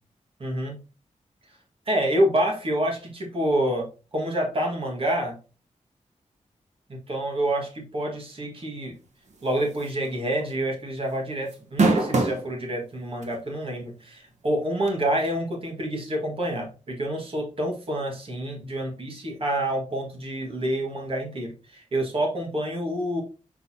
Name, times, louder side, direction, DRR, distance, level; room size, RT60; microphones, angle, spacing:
voice 1, 0.4-0.8 1.9-3.9 4.1-5.4 6.9-9.0 9.4-23.2, right 1 dB, 45° right, 0 dB, 1.8 m, -27 dB
sound 1, 9.8-10.1 10.4-10.5 11.5-12.4 13.2-13.3 14.9-15.0, right 3 dB, 65° right, 1.2 m, -21 dB
6.1 x 5.5 x 2.8 m, 0.33 s
wide cardioid pair, 160°, 13 cm